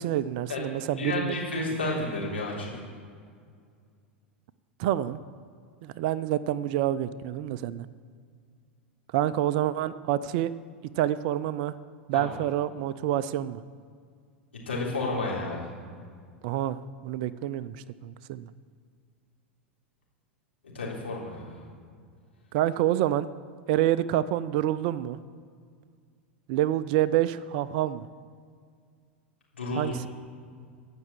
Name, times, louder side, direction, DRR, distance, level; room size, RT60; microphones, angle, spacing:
voice 1, 0.0-1.3 4.8-5.2 5.8-7.9 9.1-10.5 11.0-11.7 12.1-13.6 16.4-17.8 18.0-18.5 22.5-23.3 23.7-25.2 26.5-28.1 29.8-30.1, right 12 dB, 45° right, 16 dB, 0.4 m, -27 dB
voice 2, 1.0-2.8 12.1-12.3 14.7-15.7 20.7-21.6 29.5-29.9, left 2 dB, 75° left, -5 dB, 3.8 m, -31 dB
15.0 x 6.1 x 7.6 m, 2.1 s
figure-of-eight pair, 90°, 6 cm